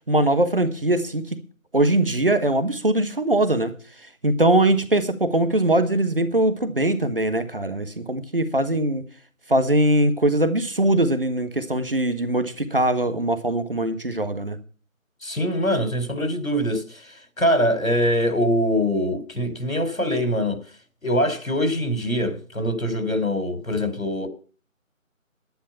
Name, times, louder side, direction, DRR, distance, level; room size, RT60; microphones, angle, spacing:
voice 1, 0.1-1.2 1.7-3.7 4.2-9.0 9.5-14.6, right 1 dB, 40° right, 1.2 m, -21 dB
voice 2, 15.2-20.6 21.0-24.3, equal, 75° left, 3.4 m, -23 dB
10.5 x 10.0 x 5.6 m
figure-of-eight pair, 165°, 41 cm